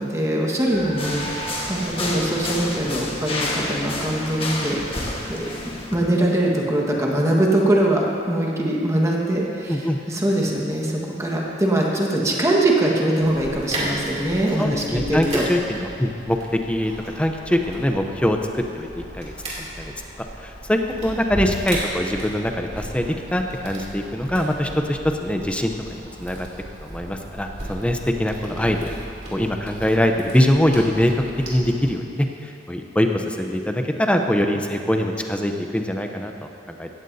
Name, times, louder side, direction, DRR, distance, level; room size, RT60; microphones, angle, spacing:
voice 1, 0.0-4.8 5.3-5.5 5.9-15.5, right 1 dB, 15° right, -2 dB, 1.6 m, -22 dB
sound 1, 0.6-7.3, left 1 dB, 55° left, 2.5 m, -39 dB
sound 2, 0.9-6.0, left 2 dB, 30° left, 1.5 m, -29 dB
voice 2, 9.7-10.0 14.6-19.9 20.4-26.5 26.8-28.9 29.3-31.2 31.5-36.9, left 1 dB, 5° left, 4 dB, 0.7 m, -23 dB
sound 3, 13.2-31.9, right 1 dB, 35° right, 3.0 m, -35 dB
17.0 x 14.0 x 2.8 m, 2.5 s
head